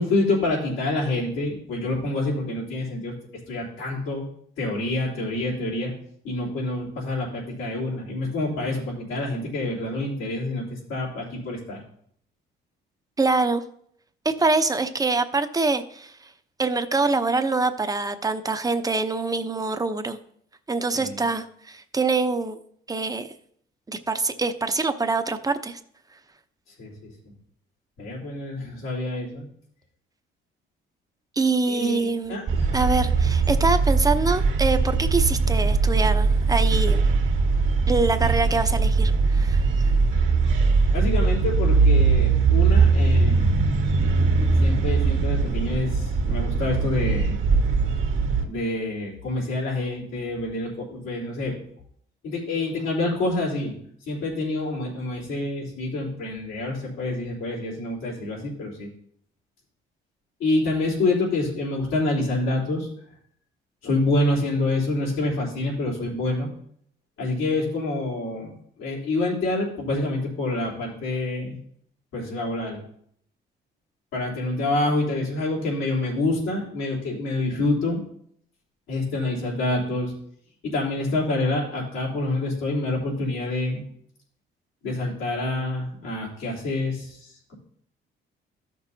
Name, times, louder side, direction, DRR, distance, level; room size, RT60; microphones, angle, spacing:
voice 1, 0.0-3.1 3.5-4.2 4.6-5.9 6.2-11.8 20.9-21.2 26.8-27.3 28.0-29.5 31.7-32.8 40.9-43.6 44.6-47.4 48.4-51.6 52.2-53.8 54.1-58.9 60.4-62.9 63.8-66.5 67.2-68.5 68.8-71.6 72.1-72.8 74.1-78.0 78.9-80.1 80.6-83.8 84.8-87.5, left 2 dB, 90° left, -4 dB, 3.6 m, -27 dB
voice 2, 13.2-13.6 14.2-16.1 16.6-20.2 20.7-22.5 22.9-23.3 23.9-25.8 31.4-32.4 32.7-37.0 37.9-39.6, right 3 dB, 20° right, 8 dB, 0.8 m, -24 dB
sound 1, 32.5-48.5, right 4 dB, 75° right, 1.5 m, -21 dB
13.5 x 6.2 x 2.8 m, 0.66 s
cardioid pair, 90°, 20 cm